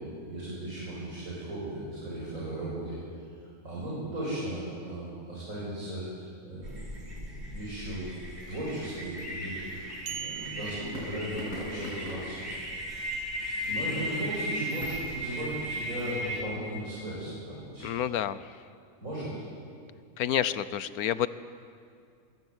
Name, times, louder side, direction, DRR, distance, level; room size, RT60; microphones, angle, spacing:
voice 1, 0.3-2.9 3.6-6.0 6.4-8.1 8.5-12.4 12.9-13.2 13.6-17.9 19.0-19.4, right 1 dB, 65° right, -7 dB, 7.4 m, -36 dB
sound 1, 6.6-16.4, equal, 45° right, 4.6 m, -37 dB
sound 2, 8.0-15.1, left 1 dB, 70° left, 8.0 m, -47 dB
sound 3, 10.1-11.9, right 8 dB, 90° right, 1.9 m, -41 dB
voice 2, 17.8-18.4 20.2-21.3, left 10 dB, 85° left, 15 dB, 1.3 m, -28 dB
25.5 x 22.0 x 8.1 m, 2.3 s
omnidirectional pair, 1.5 m